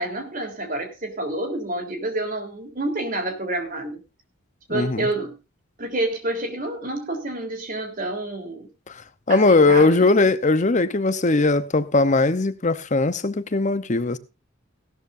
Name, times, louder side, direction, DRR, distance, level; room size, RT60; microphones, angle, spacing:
voice 1, 0.0-4.0 4.7-5.3 5.8-8.7 9.3-10.1, right 2 dB, 40° right, 3.7 m, -28 dB
voice 2, 4.7-5.1 9.3-14.2, left 3 dB, 35° left, 0.8 m, -19 dB
17.0 x 12.5 x 2.6 m
head